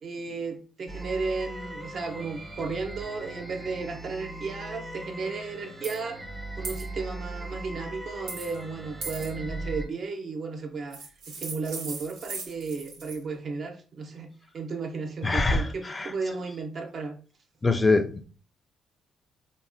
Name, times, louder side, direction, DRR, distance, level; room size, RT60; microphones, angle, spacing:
voice 1, 0.0-6.2 6.6-17.2, right 4 dB, 55° right, 0.6 m, -34 dB
sound 1, 0.9-9.9, right 1 dB, 15° right, 0.7 m, -39 dB
sound 2, 5.8-6.0 6.6-6.8 8.3-8.6 9.0-9.3 10.9-13.2, right 4 dB, 90° right, 0.8 m, -38 dB
voice 2, 15.2-15.6 16.0-16.1 17.6-18.2, left 3 dB, 25° left, 0.3 m, -22 dB
4.1 x 2.1 x 2.5 m
cardioid pair, 90°, 0 cm